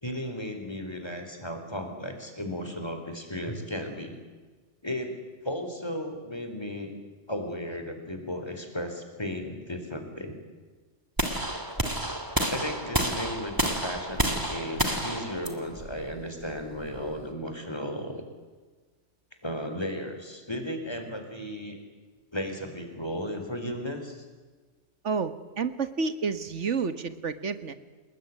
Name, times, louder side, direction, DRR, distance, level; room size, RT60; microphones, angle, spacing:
voice 1, 0.0-4.2 4.8-5.1 5.4-6.9 7.3-10.3 12.5-18.2 19.4-21.8 22.3-24.2, equal, 20° left, 6 dB, 4.3 m, -35 dB
sound 1, 11.2-17.3, right 1 dB, 15° right, 2.8 m, -30 dB
voice 2, 25.0-27.8, right 5 dB, 80° right, 12 dB, 1.9 m, -30 dB
29.5 x 20.5 x 9.7 m, 1.4 s
omnidirectional pair, 1.2 m